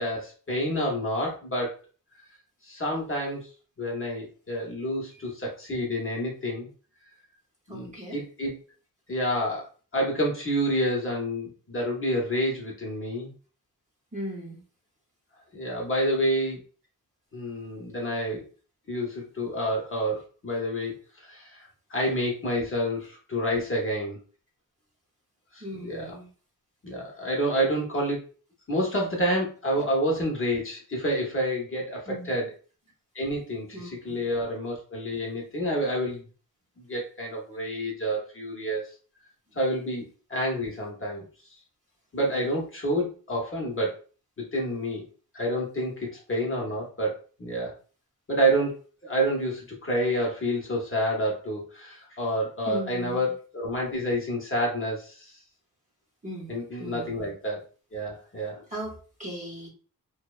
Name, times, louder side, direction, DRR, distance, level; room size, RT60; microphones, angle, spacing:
voice 1, 0.0-1.7 2.6-3.5 3.8-6.7 7.7-8.6 9.1-9.7 9.9-13.3 15.5-16.6 17.3-18.4 18.9-24.2 25.5-26.2 26.8-28.2 28.7-32.5 33.1-36.2 36.8-38.8 39.5-40.0 40.3-41.3 42.1-43.9 44.4-45.0 45.3-47.7 48.3-48.7 49.0-55.4 56.5-57.6 57.9-58.6, equal, 35° left, -2 dB, 0.7 m, -28 dB
voice 2, 7.7-8.2 14.1-14.6 25.6-26.3 32.1-32.3 33.7-34.2 52.7-53.3 56.2-56.5 56.8-57.1 58.7-58.9 59.2-59.7, equal, 20° right, -5 dB, 0.7 m, -37 dB
2.7 x 2.0 x 2.3 m, 0.39 s
wide cardioid pair, 160°, 36 cm